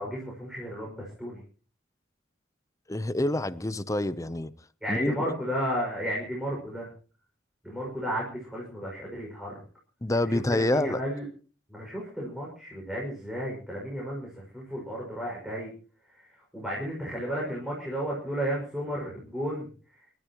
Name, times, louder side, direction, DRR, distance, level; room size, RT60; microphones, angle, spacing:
voice 1, 0.0-1.4 4.8-6.9 7.6-9.6 10.2-11.3 11.7-15.7 16.1-19.7, equal, 5° right, 6.2 m, -33 dB
voice 2, 2.9-4.5 4.9-5.2 10.0-11.0, left 1 dB, 15° left, 0.8 m, -27 dB
29.0 x 14.0 x 3.1 m
head